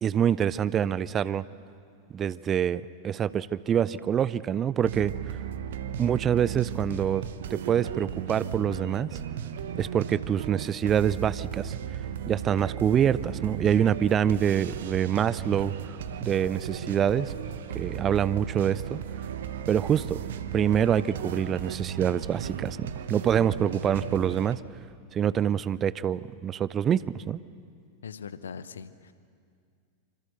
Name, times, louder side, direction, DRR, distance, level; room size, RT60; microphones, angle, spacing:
voice 1, 0.0-1.4 2.1-5.4 6.0-7.2 7.5-9.1 9.7-17.3 17.7-19.0 19.7-20.2 20.5-24.6 25.1-27.4, right 9 dB, 25° right, 18 dB, 0.5 m, -26 dB
sound 1, 4.8-24.6, right 8 dB, 60° right, 1.2 m, -35 dB
voice 2, 28.0-29.1, left 6 dB, 70° left, 14 dB, 1.0 m, -41 dB
26.5 x 26.0 x 6.7 m, 2.2 s
figure-of-eight pair, 90°, 0 cm